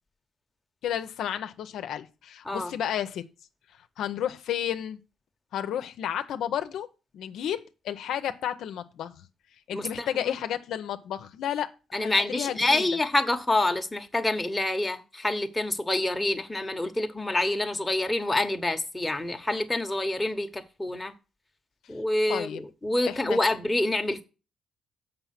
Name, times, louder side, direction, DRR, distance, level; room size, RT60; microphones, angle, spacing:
voice 1, 0.8-3.2 3.7-5.0 5.5-6.9 7.1-9.3 9.7-11.7 12.0-12.8 22.3-22.6 23.1-23.4, left 10 dB, 80° left, 0.6 m, -32 dB
voice 2, 9.7-10.1 11.9-21.1 21.9-24.2, left 2 dB, 10° left, 1.0 m, -27 dB
6.9 x 5.4 x 5.8 m
cardioid pair, 90°, 0 cm